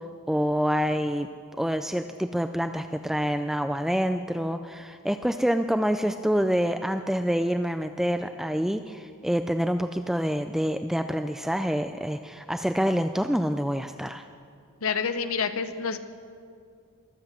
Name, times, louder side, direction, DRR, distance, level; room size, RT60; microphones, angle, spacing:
voice 1, 0.3-1.3 1.6-14.2, equal, ahead, 8 dB, 0.3 m, -27 dB
voice 2, 14.8-16.0, left 6 dB, 70° left, 10 dB, 0.9 m, -28 dB
23.0 x 7.9 x 7.4 m, 2.3 s
head